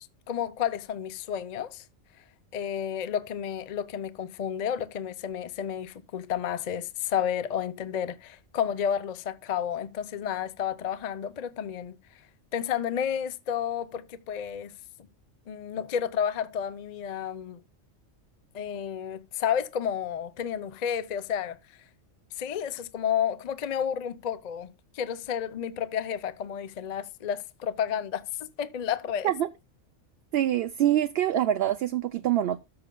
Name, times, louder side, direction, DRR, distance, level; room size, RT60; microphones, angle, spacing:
voice 1, 0.3-1.8 2.5-12.0 12.5-14.7 15.0-15.1 15.5-17.6 18.5-21.6 22.4-29.3, left 8 dB, 45° left, 0.6 m, -31 dB
voice 2, 30.3-32.6, right 11 dB, 65° right, 0.7 m, -25 dB
13.5 x 6.6 x 2.2 m
omnidirectional pair, 1.3 m